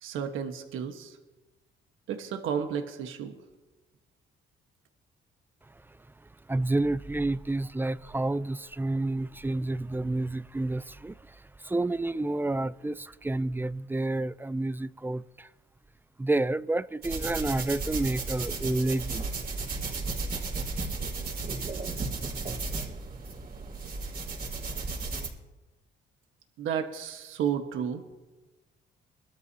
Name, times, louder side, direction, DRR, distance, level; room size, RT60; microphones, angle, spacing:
voice 1, 0.0-1.2 2.1-3.3 26.6-28.0, right 8 dB, 85° right, 1.3 m, -32 dB
voice 2, 6.5-11.1 11.6-15.5 16.2-19.3, right 2 dB, 10° right, 0.4 m, -29 dB
sound 1, 17.0-25.3, right 3 dB, 50° right, 4.4 m, -34 dB
22.5 x 13.0 x 2.8 m
cardioid pair, 90°, 20 cm